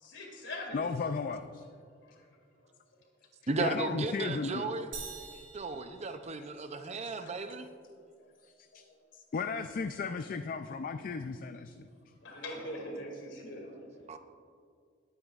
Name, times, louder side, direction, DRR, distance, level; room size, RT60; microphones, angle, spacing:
voice 1, 0.1-0.9 12.2-13.7, left 1 dB, 65° left, 1 dB, 2.3 m, -41 dB
voice 2, 0.7-1.6 3.6-4.7 5.3-5.4 8.4-8.8 9.1-11.9, left 4 dB, 45° left, 8 dB, 0.3 m, -35 dB
voice 3, 3.5-4.9 5.5-7.7 14.1-14.2, right 3 dB, 35° right, 8 dB, 0.5 m, -35 dB
sound 1, 4.9-6.9, right 4 dB, 65° right, 2.6 m, -46 dB
20.0 x 9.1 x 2.4 m, 2.2 s
head